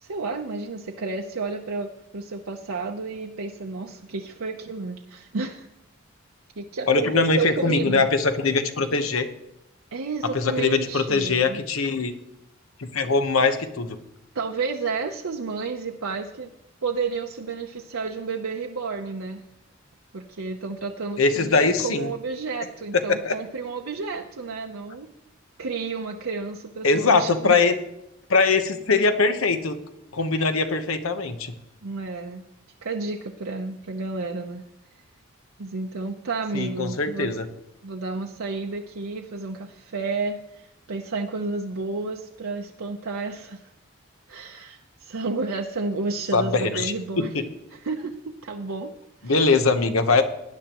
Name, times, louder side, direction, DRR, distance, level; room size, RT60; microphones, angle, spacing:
voice 1, 0.0-5.7 6.6-8.1 9.9-11.6 14.3-16.5 16.8-19.4 20.1-25.1 25.6-27.6 31.8-32.5 32.8-34.6 35.6-37.3 37.8-43.6 44.3-47.3 47.7-48.9 49.2-49.6, right 4 dB, 90° right, 1 dB, 0.7 m, -31 dB
voice 2, 6.9-9.3 10.3-12.1 12.8-13.9 21.2-22.1 23.1-23.3 26.8-27.7 28.3-29.8 30.1-31.5 36.5-37.5 46.3-47.4 49.2-50.2, left 4 dB, 85° left, 8 dB, 1.0 m, -22 dB
18.5 x 10.5 x 3.0 m, 0.84 s
head